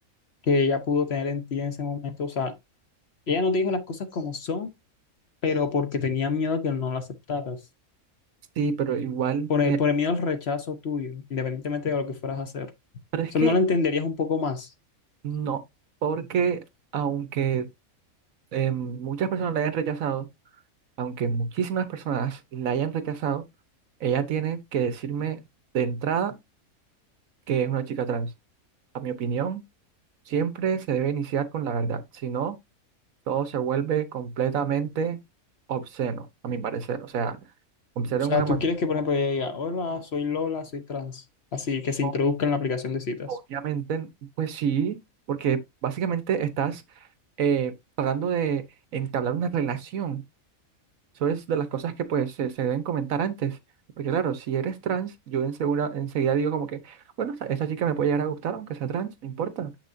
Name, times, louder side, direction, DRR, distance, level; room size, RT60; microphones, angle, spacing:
voice 1, 0.4-2.5 3.3-4.7 5.4-7.6 9.5-12.7 13.3-14.7 38.3-41.2 41.5-43.4, left 4 dB, 50° left, 1.0 m, -26 dB
voice 2, 8.6-9.8 13.1-13.6 15.2-15.6 16.0-16.6 16.9-17.7 18.5-20.3 21.0-23.4 24.0-25.4 25.7-26.3 27.5-28.3 28.9-29.6 30.3-32.6 33.3-35.2 35.7-37.4 38.0-38.6 42.0-42.1 43.3-44.1 44.4-45.0 45.3-46.8 47.4-48.6 48.9-50.2 51.2-53.6 54.0-59.7, right 7 dB, 70° right, 1.3 m, -27 dB
7.5 x 6.0 x 2.6 m
omnidirectional pair, 1.5 m